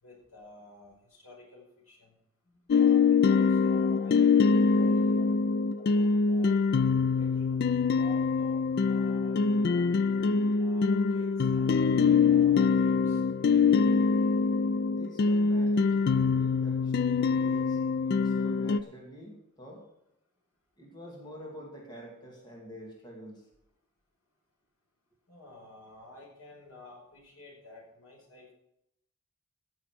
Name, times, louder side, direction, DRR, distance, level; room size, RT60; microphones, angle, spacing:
voice 1, 0.0-2.2 2.7-4.3 4.7-5.3 5.8-6.6 7.2-7.6 8.0-9.9 10.6-11.8 12.3-13.2 15.5-15.8 25.3-28.5, left 2 dB, 85° left, -1 dB, 5.2 m, -52 dB
sound 1, 2.7-18.8, left 5 dB, 45° left, 0.3 m, -24 dB
voice 2, 14.9-19.9 20.8-23.4, equal, 20° left, -1 dB, 2.3 m, -47 dB
14.5 x 7.1 x 6.0 m, 0.79 s
head